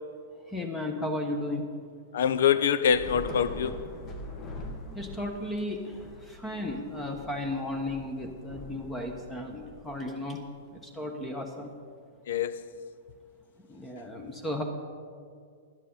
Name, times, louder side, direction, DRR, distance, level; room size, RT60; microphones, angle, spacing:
voice 1, 0.5-1.6 4.9-5.8 6.4-10.4 11.0-11.7 13.7-14.6, left 1 dB, 10° left, 1.1 m, -34 dB
voice 2, 2.1-3.8 12.3-12.7, left 8 dB, 60° left, 0.6 m, -25 dB
Thunder / Rain, 2.9-10.4, left 2 dB, 30° left, 1.4 m, -43 dB
11.5 x 10.0 x 5.5 m
figure-of-eight pair, 105°, 0 cm